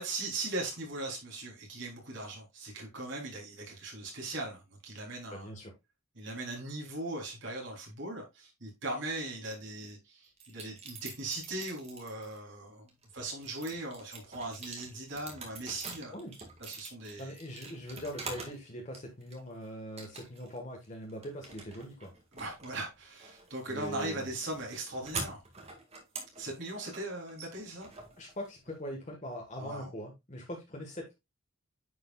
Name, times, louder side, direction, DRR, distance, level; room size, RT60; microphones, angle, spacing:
voice 1, 0.0-5.5 6.2-16.1 16.6-17.4 22.3-25.4 26.4-27.9 29.6-29.9, right 2 dB, 60° right, 3.6 m, -39 dB
voice 2, 5.3-5.7 16.1-16.3 17.2-22.1 23.7-24.3 28.2-31.1, equal, 35° left, 1.5 m, -42 dB
sound 1, 10.4-12.4 12.9-18.6 18.9-19.6 20.0-20.6 20.8-28.8, right 3 dB, 30° right, 1.9 m, -45 dB
9.8 x 5.0 x 2.4 m
head